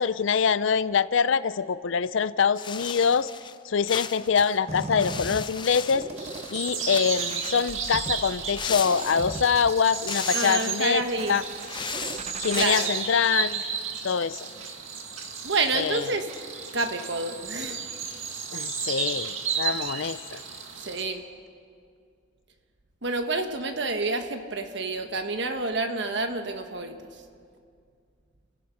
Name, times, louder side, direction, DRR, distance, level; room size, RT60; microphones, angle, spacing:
voice 1, 0.0-3.3 3.6-11.0 11.3-11.4 12.4-13.6 14.0-14.5 15.7-16.1 18.5-20.4, left 6 dB, 70° left, 16 dB, 0.5 m, -25 dB
sound 1, 2.6-3.6 3.9-6.6 6.8-7.7 8.5-9.5 9.9-10.8 11.5-13.1, left 6 dB, 25° left, 0.5 m, -36 dB
sound 2, 4.7-12.7, right 2 dB, 35° right, 0.7 m, -39 dB
sound 3, 6.2-21.0, right 6 dB, 80° right, 2.2 m, -33 dB
voice 2, 10.3-11.4 12.6-12.9 15.4-16.3 16.7-17.8 20.8-21.2 23.0-27.0, right 3 dB, 60° right, 6 dB, 1.4 m, -28 dB
29.5 x 16.0 x 5.8 m, 2.3 s
head